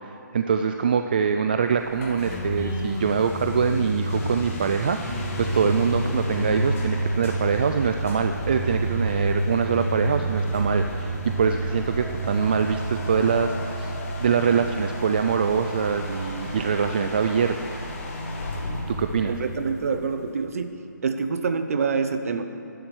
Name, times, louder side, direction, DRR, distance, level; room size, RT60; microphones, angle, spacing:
voice 1, 0.0-13.9 14.2-17.7 18.9-19.3, right 6 dB, 30° right, 7 dB, 0.3 m, -24 dB
sound 1, 1.6-6.9, equal, 15° right, 2.0 m, -34 dB
sound 2, 2.0-20.5, right 1 dB, 40° left, 2.0 m, -30 dB
voice 2, 19.3-20.8 21.0-22.4, right 5 dB, 50° right, 9 dB, 0.9 m, -26 dB
12.0 x 11.5 x 6.2 m, 2.9 s
hypercardioid pair, 165°, 10 cm